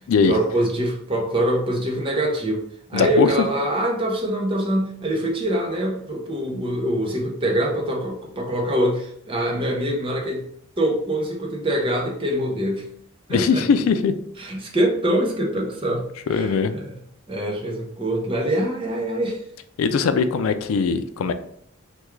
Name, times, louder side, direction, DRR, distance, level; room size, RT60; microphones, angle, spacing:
voice 1, 0.3-10.4 10.8-12.9 13.3-13.6 14.4-17.0 17.3-19.4, right 1 dB, 25° right, 0 dB, 0.6 m, -24 dB
voice 2, 2.9-3.3 13.3-14.1 16.3-16.7 19.8-21.3, left 5 dB, 85° left, 10 dB, 0.3 m, -20 dB
3.5 x 2.2 x 3.0 m, 0.66 s
head